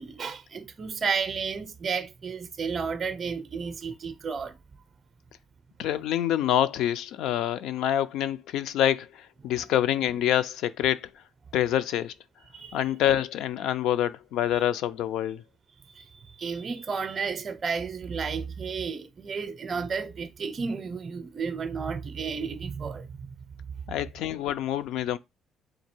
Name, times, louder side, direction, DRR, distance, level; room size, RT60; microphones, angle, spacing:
voice 1, 0.0-4.6 9.4-9.5 12.5-12.8 15.9-23.3, right 5 dB, 30° right, 0.5 m, -32 dB
voice 2, 5.8-11.1 11.5-12.1 12.7-15.4 23.9-25.2, left 11 dB, 80° left, 0.4 m, -26 dB
3.8 x 2.7 x 4.3 m
cardioid pair, 140°, 0 cm